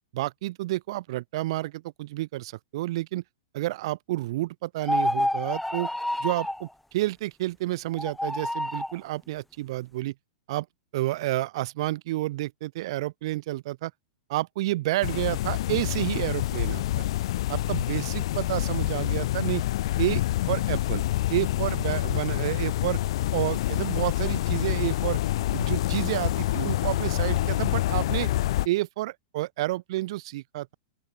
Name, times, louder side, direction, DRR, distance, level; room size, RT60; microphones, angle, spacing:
voice 1, 0.1-3.2 3.5-5.9 6.2-10.1 10.5-10.7 10.9-13.9 14.3-17.1 17.5-19.6 20.0-20.2 20.5-21.0 21.3-23.0 23.3-25.2 25.5-28.3 28.6-30.7, right 17 dB, 60° right, 3.9 m, -30 dB
sound 1, 4.8-6.6 7.9-9.0, left 1 dB, 5° left, 6.2 m, -28 dB
sound 2, 15.0-28.7, left 15 dB, 65° left, 5.4 m, -27 dB
open air
hypercardioid pair, 120°, 3 cm